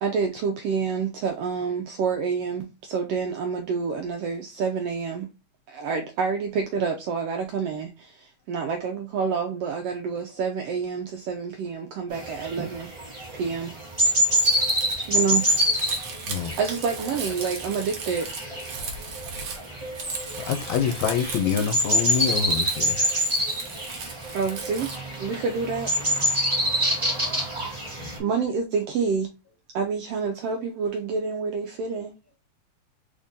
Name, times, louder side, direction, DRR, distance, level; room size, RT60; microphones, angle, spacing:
voice 1, 0.0-5.3 5.7-12.9 13.3-13.7 15.1-15.5 16.6-18.3 24.3-24.9 25.2-25.9 28.2-29.3 29.7-32.1, right 5 dB, 80° right, 1.4 m, -28 dB
sound 1, 12.1-28.2, equal, 25° right, 0.6 m, -26 dB
Crumpling crinkling, 14.4-25.0, right 5 dB, 60° right, 1.6 m, -37 dB
voice 2, 16.2-16.6 20.4-23.2 28.0-28.2, left 8 dB, 80° left, 1.9 m, -26 dB
voice 3, 18.7-19.2 25.3-25.4 25.9-26.0 26.3-26.5 28.1-28.3, left 3 dB, 25° left, 1.5 m, -59 dB
4.4 x 3.6 x 2.5 m
omnidirectional pair, 3.3 m